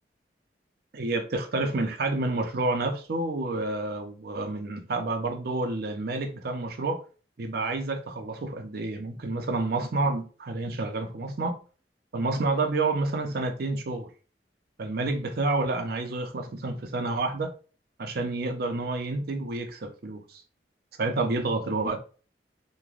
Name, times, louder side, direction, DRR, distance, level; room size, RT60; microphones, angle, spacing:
voice 1, 0.9-7.0 7.4-11.6 12.1-14.1 14.8-17.5 18.0-20.4 21.0-22.0, right 2 dB, 60° right, 0.5 m, -29 dB
3.1 x 2.2 x 2.4 m
head